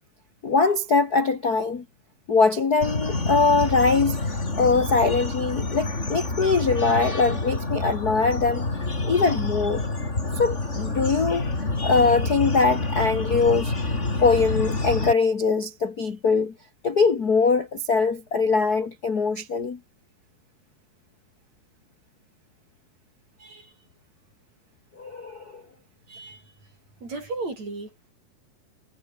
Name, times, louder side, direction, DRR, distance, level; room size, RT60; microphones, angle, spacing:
voice 1, 0.4-1.8 2.3-4.2 4.5-8.7 9.0-9.8 10.3-11.5 11.8-13.7 14.2-16.5 16.8-19.8 25.0-25.6, left 4 dB, 55° left, 1.0 m, -22 dB
sound 1, 2.8-15.1, left 2 dB, 15° left, 3.8 m, -28 dB
voice 2, 23.4-23.7 26.1-26.4 27.0-28.1, right 3 dB, 40° right, 9.1 m, -35 dB
omnidirectional pair, 4.9 m